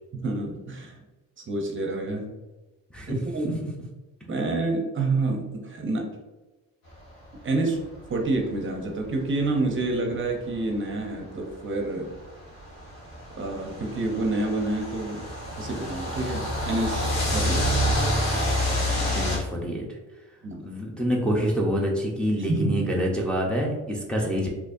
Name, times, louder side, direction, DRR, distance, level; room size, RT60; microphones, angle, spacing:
voice 1, 0.1-1.0 1.5-2.3 3.1-3.6 4.3-6.1 7.4-7.8 8.1-12.1 13.4-15.2 15.6-17.8 20.4-20.6 22.5-22.7, right 2 dB, 35° right, 2 dB, 0.7 m, -28 dB
sound 1, 8.4-8.5 9.1-9.2 10.2-10.3 11.7-19.4, left 1 dB, 80° left, 1.5 m, -27 dB
voice 2, 19.1-19.9 20.6-24.5, equal, 5° left, -3 dB, 0.6 m, -26 dB
4.0 x 2.9 x 2.5 m, 1.1 s
cardioid pair, 105°, 33 cm